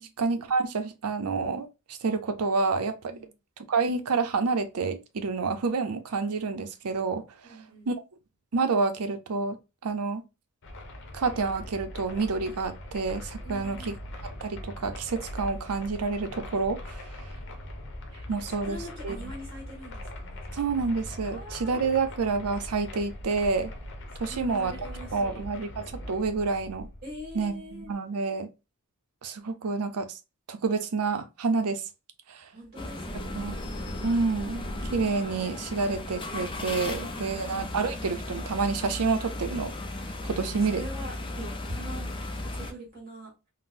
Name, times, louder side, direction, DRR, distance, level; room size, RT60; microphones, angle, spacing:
voice 1, 0.2-3.0 3.7-7.2 7.9-8.0 8.5-9.6 9.8-10.2 11.1-14.0 14.4-17.1 18.3-18.8 19.0-19.2 20.5-23.7 24.2-24.7 25.1-26.9 27.3-28.5 29.2-30.1 30.5-31.8 32.3-32.5 33.4-33.6 34.0-34.6 34.9-39.7 40.3-40.8, right 4 dB, 85° right, 0.6 m, -28 dB
voice 2, 7.4-7.9 13.4-14.0 18.1-20.6 21.3-22.6 24.1-25.4 27.0-27.9 32.5-33.7 37.1-37.8 40.4-43.3, right 1 dB, 45° right, 1.7 m, -44 dB
sound 1, 10.6-27.9, left 1 dB, 55° left, 0.7 m, -41 dB
sound 2, 32.8-42.7, left 2 dB, 20° left, 0.4 m, -36 dB
sound 3, 33.0-35.5 36.4-37.4, equal, 90° left, 0.9 m, -41 dB
3.8 x 2.0 x 2.5 m
head